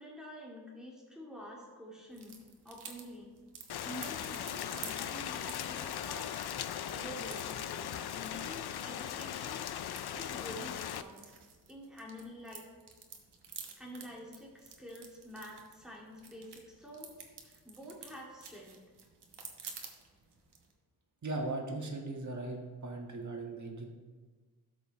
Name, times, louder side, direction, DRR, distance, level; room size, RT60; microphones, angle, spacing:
voice 1, 0.0-2.4 2.6-3.3 3.8-9.6 10.1-11.3 11.7-12.6 13.8-18.8, equal, ahead, -4 dB, 2.3 m, -48 dB
sound 1, 2.1-20.7, right 5 dB, 90° right, 1.2 m, -52 dB
Rain, 3.7-11.0, left 10 dB, 75° left, 0.5 m, -39 dB
voice 2, 21.2-23.9, right 2 dB, 45° right, 1 dB, 1.6 m, -38 dB
13.0 x 6.8 x 3.2 m, 1.4 s
wide cardioid pair, 90°, 39 cm